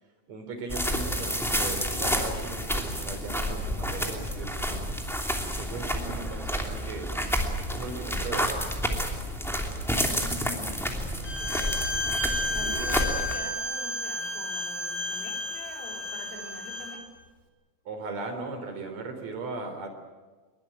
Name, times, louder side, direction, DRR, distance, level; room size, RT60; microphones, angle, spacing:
voice 1, 0.3-4.9 5.6-7.1 7.5-8.7 12.6-12.8 17.9-19.9, right 3 dB, 35° right, 5 dB, 4.3 m, -38 dB
sound 1, 0.7-13.4, equal, ahead, 0.9 m, -30 dB
voice 2, 6.0-6.4 10.0-11.8 12.5-17.0, left 1 dB, 80° left, 1 dB, 6.5 m, -43 dB
Bowed string instrument, 11.2-17.0, left 1 dB, 20° left, 2.3 m, -32 dB
23.0 x 22.5 x 9.0 m, 1.3 s
omnidirectional pair, 5.8 m